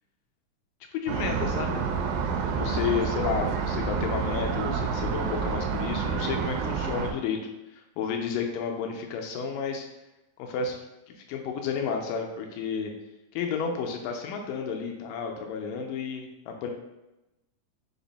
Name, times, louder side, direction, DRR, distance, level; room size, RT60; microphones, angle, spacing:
voice 1, 0.9-1.9 2.6-7.4 7.7-9.9 10.4-10.8 11.3-12.9 13.3-16.7, left 6 dB, 80° left, 3 dB, 2.1 m, -31 dB
sound 1, 1.1-7.1, right 5 dB, 85° right, 2.3 m, -28 dB
5.8 x 2.1 x 4.0 m, 0.97 s
omnidirectional pair, 3.9 m